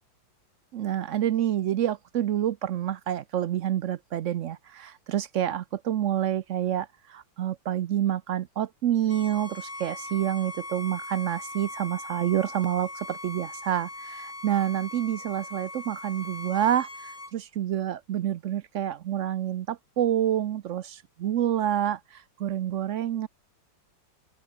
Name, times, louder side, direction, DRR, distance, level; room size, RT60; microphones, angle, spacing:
voice 1, 0.7-23.3, right 11 dB, 80° right, 0.6 m, -28 dB
Bowed string instrument, 9.1-17.3, left 2 dB, 45° left, 6.5 m, -40 dB
open air
omnidirectional pair, 2.1 m